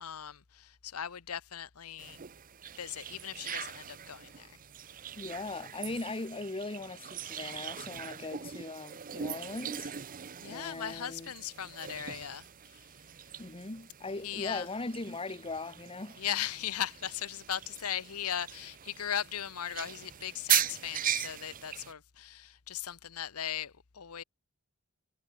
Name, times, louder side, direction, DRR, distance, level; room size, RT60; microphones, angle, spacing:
voice 1, 0.0-2.2 2.8-4.6 10.4-12.9 14.2-14.7 16.2-24.2, left 10 dB, 85° left, 1.0 m, -38 dB
sound 1, 2.0-21.9, right 10 dB, 40° right, 0.7 m, -39 dB
voice 2, 5.2-9.9 10.4-11.3 13.4-16.2, left 3 dB, 25° left, 1.1 m, -39 dB
head